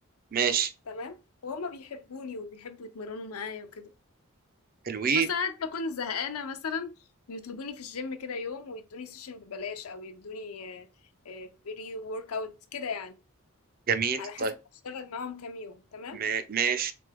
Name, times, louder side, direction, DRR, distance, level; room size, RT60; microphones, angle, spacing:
voice 1, 0.3-0.7 4.9-5.3 13.9-14.5 16.1-16.9, right 6 dB, 40° right, 0.5 m, -27 dB
voice 2, 0.9-1.2 1.4-3.9 5.1-6.9 7.3-10.9 11.2-13.2 14.2-14.5 14.8-16.2, left 4 dB, 85° left, 0.6 m, -37 dB
3.7 x 3.4 x 3.4 m
head